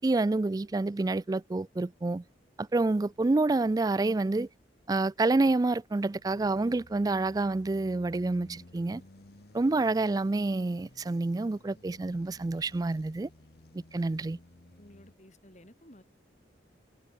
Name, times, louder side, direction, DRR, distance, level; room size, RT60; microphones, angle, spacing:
voice 1, 0.0-2.2 2.6-4.5 4.9-9.0 9.5-13.3 13.9-14.4, right 2 dB, 20° right, 0.3 m, -28 dB
sound 1, 3.0-4.7 5.3-15.1, left 1 dB, 60° left, 1.3 m, -56 dB
voice 2, 14.8-16.0, left 1 dB, 40° left, 5.2 m, -54 dB
head